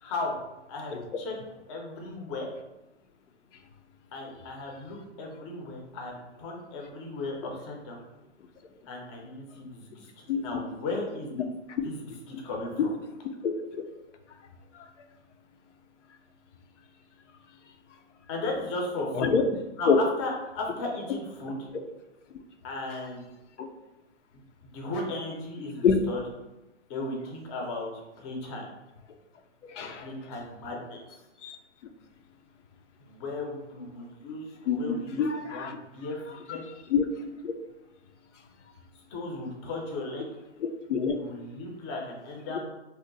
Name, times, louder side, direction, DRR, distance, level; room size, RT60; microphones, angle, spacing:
voice 1, 0.0-0.3 0.7-1.4 1.7-2.5 4.1-8.0 8.9-11.3 11.8-12.0 12.3-12.9 18.3-19.4 19.8-21.6 22.6-23.2 24.6-26.2 26.9-27.9 28.2-28.6 30.0-31.2 33.0-34.5 34.8-35.2 35.5-36.6 39.1-40.3 41.1-42.7, left 2 dB, 25° left, 0 dB, 0.5 m, -36 dB
voice 2, 13.4-13.8 14.7-14.9 19.1-19.4 19.9-20.0 23.6-23.7 25.8-25.9 29.6-30.1 31.4-31.6 34.7-35.8 36.5-36.6 36.9-37.0 37.4-37.5 40.6-41.2, left 6 dB, 85° left, 5 dB, 0.5 m, -26 dB
2.7 x 2.1 x 3.8 m, 0.98 s
hypercardioid pair, 140°, 35 cm